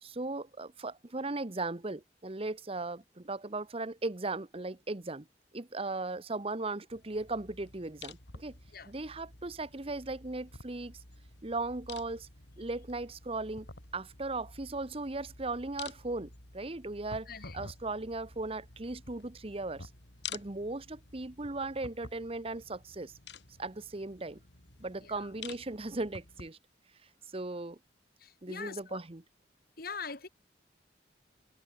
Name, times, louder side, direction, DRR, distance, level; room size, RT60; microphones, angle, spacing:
voice 1, 0.0-5.3 5.5-8.6 8.8-11.0 11.4-12.3 12.6-13.7 13.9-19.9 20.3-23.2 23.6-24.4 24.8-26.6 27.3-27.8 28.4-29.2, right 2 dB, 35° right, 1.1 m, -37 dB
sound 1, 6.9-26.5, left 5 dB, 80° left, 5.1 m, -50 dB
voice 2, 28.2-29.0 29.8-30.3, left 5 dB, 55° left, 2.5 m, -43 dB
head